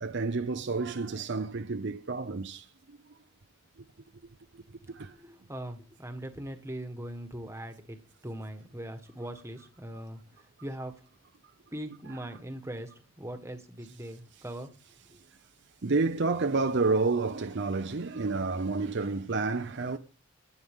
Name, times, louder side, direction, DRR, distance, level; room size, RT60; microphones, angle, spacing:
voice 1, 0.0-3.0 4.9-5.1 15.8-20.0, right 3 dB, 50° right, 0.7 m, -29 dB
voice 2, 4.9-8.0 8.2-11.0 11.7-14.7 15.1-15.2, right 1 dB, 10° right, 1.4 m, -41 dB
17.5 x 9.5 x 3.6 m
head